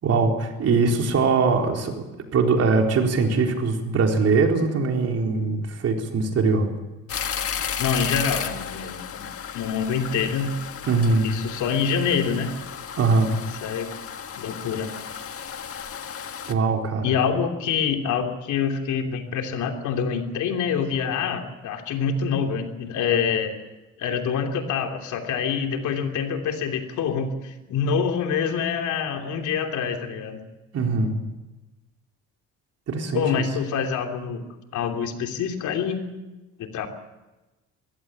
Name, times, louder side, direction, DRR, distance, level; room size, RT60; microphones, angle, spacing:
voice 1, 0.0-2.0 2.3-6.7 10.8-11.3 12.9-13.4 16.5-17.1 30.7-31.1 32.9-33.5, right 4 dB, 50° right, 2 dB, 4.2 m, -22 dB
sound 1, 7.1-16.5, left 7 dB, 45° left, 1.7 m, -33 dB
voice 2, 7.8-10.5 11.2-12.5 13.6-13.9 14.4-14.9 17.0-23.6 24.0-30.4 33.1-36.1 36.6-36.9, left 6 dB, 70° left, 4 dB, 3.1 m, -26 dB
22.0 x 16.5 x 8.7 m, 1.1 s
cardioid pair, 95°, 31 cm